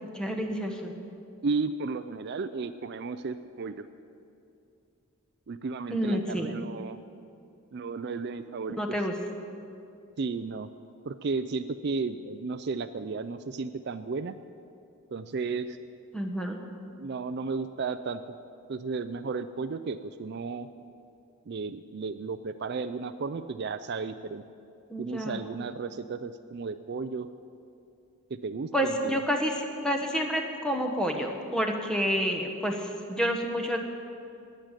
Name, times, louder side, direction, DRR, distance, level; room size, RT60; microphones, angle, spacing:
voice 1, 0.1-0.9 5.9-6.6 8.8-9.1 16.1-16.6 24.9-25.4 28.7-33.8, equal, 5° left, 2 dB, 1.2 m, -29 dB
voice 2, 1.4-3.9 5.5-7.0 7.7-9.0 10.2-10.7 11.1-14.3 15.1-15.8 17.0-18.4 18.7-20.7 21.5-24.4 25.0-27.3 28.4-29.2, right 4 dB, 50° right, 11 dB, 0.4 m, -34 dB
19.5 x 6.6 x 9.0 m, 2.6 s
head